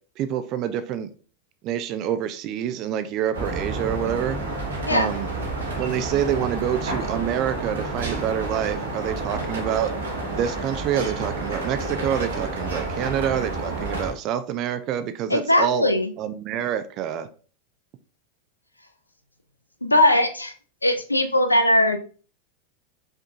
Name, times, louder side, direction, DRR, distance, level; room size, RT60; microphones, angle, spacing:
voice 1, 0.2-1.1 1.6-4.4 4.9-5.3 5.8-9.9 10.3-15.9 16.2-17.3, right 10 dB, 40° right, 11 dB, 0.5 m, -27 dB
sound 1, 3.3-14.1, right 2 dB, 70° right, 1.2 m, -30 dB
voice 2, 15.3-16.1 19.8-20.5 20.8-22.0, left 1 dB, 90° left, 8 dB, 0.6 m, -19 dB
5.3 x 3.6 x 2.5 m, 0.39 s
figure-of-eight pair, 85°, 0 cm